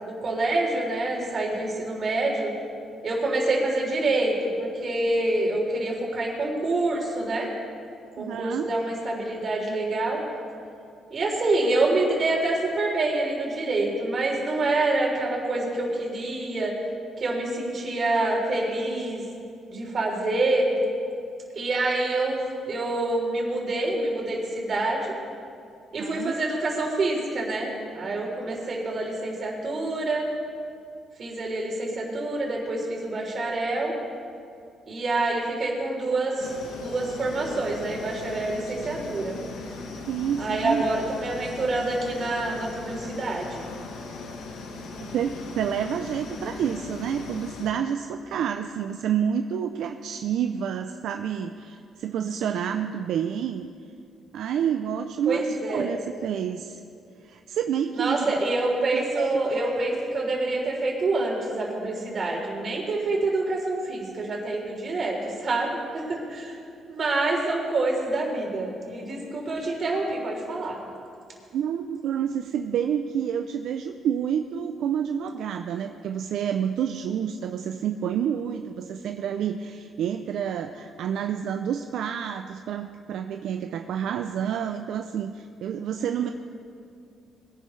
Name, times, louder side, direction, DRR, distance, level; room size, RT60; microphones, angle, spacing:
voice 1, 0.0-2.5 3.0-7.5 8.2-10.2 11.1-16.7 17.2-19.2 19.7-20.7 21.6-22.4 22.7-25.1 25.9-30.3 31.2-33.9 34.9-36.5 36.8-39.4 40.4-43.6 55.3-55.9 58.0-66.5 66.9-70.8 86.2-86.3, right 2 dB, 50° right, -1 dB, 3.6 m, -26 dB
voice 2, 8.2-8.7 25.9-26.3 40.1-41.0 45.0-53.7 54.3-56.8 57.2-58.3 58.9-59.4 71.5-86.3, right 8 dB, 75° right, 6 dB, 0.5 m, -29 dB
sound 1, 36.4-47.7, left 3 dB, 85° left, 1.4 m, -39 dB
21.0 x 11.0 x 3.3 m, 2.5 s
cardioid pair, 90°, 0 cm